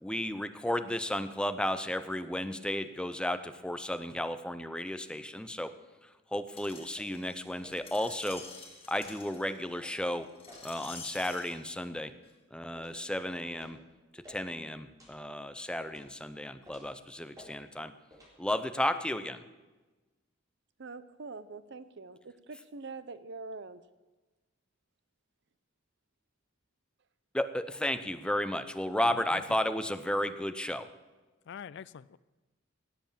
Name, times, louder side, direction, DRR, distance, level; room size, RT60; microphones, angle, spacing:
voice 1, 0.0-5.7 6.3-8.4 8.9-10.3 10.6-12.1 12.5-13.8 14.1-17.9 18.4-19.4 27.3-30.9, left 1 dB, 5° left, 10 dB, 0.6 m, -33 dB
Screech, 6.6-11.5 12.2-12.3, left 4 dB, 30° left, 2.4 m, -48 dB
sound 1, 7.0-7.2 7.6-7.9 8.3-8.5 9.0-9.2 9.8-10.0 10.5-10.6 11.2-11.4 11.9-12.0 12.7-13.0 13.5-13.8 14.2-14.4 15.0-15.2 15.9-16.1 16.6-16.9 17.3-17.5 18.1-18.3, left 1 dB, 20° right, 4.0 m, -53 dB
voice 2, 20.8-23.8, right 3 dB, 60° right, 14 dB, 0.7 m, -44 dB
voice 3, 29.1-29.6 31.5-32.2, left 7 dB, 60° left, 19 dB, 0.4 m, -45 dB
17.5 x 7.8 x 7.4 m, 1.2 s
head